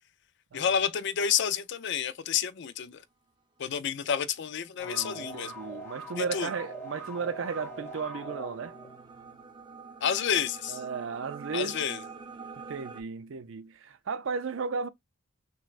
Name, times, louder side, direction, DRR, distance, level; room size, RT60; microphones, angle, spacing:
voice 1, 0.5-3.0 3.6-5.5 6.2-6.5 10.0-10.8 11.5-12.0, left 8 dB, 60° left, 0.4 m, -29 dB
sound 1, 4.4-13.0, right 5 dB, 25° right, 0.7 m, -47 dB
sound 2, 4.8-9.4, right 2 dB, 10° left, 1.2 m, -43 dB
voice 2, 4.8-8.7 10.7-11.8 12.7-14.9, right 5 dB, 65° right, 0.5 m, -34 dB
6.1 x 2.2 x 2.4 m
head